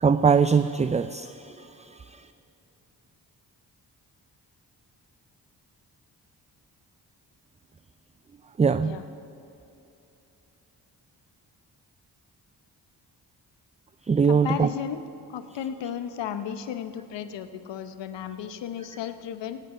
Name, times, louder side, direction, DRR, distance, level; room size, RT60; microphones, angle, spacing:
voice 1, 0.0-2.3 8.6-9.0 14.1-14.7, right 6 dB, 20° right, 12 dB, 0.3 m, -22 dB
voice 2, 14.3-15.0 15.3-19.6, left 9 dB, 80° left, 11 dB, 0.8 m, -34 dB
17.5 x 9.9 x 4.9 m, 3.0 s
supercardioid pair, 45°, 42 cm